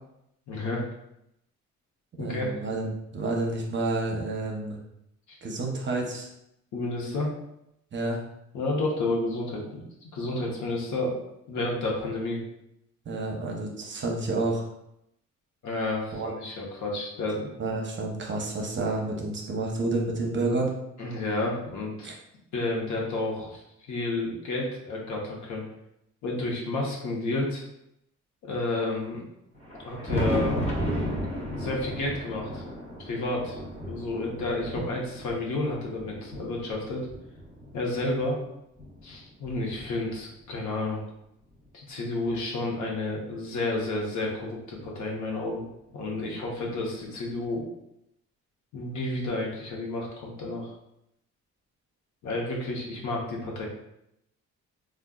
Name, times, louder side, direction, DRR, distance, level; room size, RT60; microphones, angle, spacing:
voice 1, 0.5-0.8 2.2-2.5 5.3-5.5 6.7-7.3 8.5-9.8 10.1-11.2 11.5-12.4 15.6-17.5 21.0-22.1 22.5-25.6 26.2-27.6 28.4-29.2 29.8-30.6 31.6-32.6 33.0-33.6 33.9-37.1 37.7-38.4 39.0-41.0 41.7-45.6 45.9-47.6 48.7-50.7 52.2-53.7, left 2 dB, 75° left, -2 dB, 0.9 m, -31 dB
voice 2, 2.2-4.8 5.4-6.3 7.9-8.2 13.1-14.7 16.1-16.3 17.6-20.7 22.0-22.1, right 2 dB, 40° right, 0 dB, 0.7 m, -29 dB
Thunder, 29.5-38.1 38.8-40.5 41.6-41.7 42.3-42.4 44.2-44.3 45.7-45.8 47.4-47.5, equal, 20° left, 0.8 m, -34 dB
3.6 x 2.3 x 2.3 m, 0.82 s
cardioid pair, 90°, 30 cm